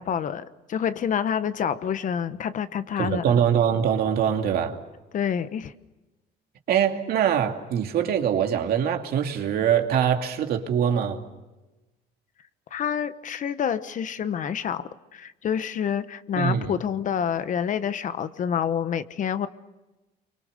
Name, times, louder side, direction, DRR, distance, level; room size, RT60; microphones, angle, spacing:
voice 1, 0.0-3.4 5.1-5.7 12.7-19.5, left 8 dB, 50° left, 1.1 m, -28 dB
voice 2, 3.0-4.8 6.7-11.2 16.4-16.8, right 8 dB, 65° right, 2.6 m, -23 dB
28.0 x 24.5 x 6.7 m
cardioid pair, 110°, 17 cm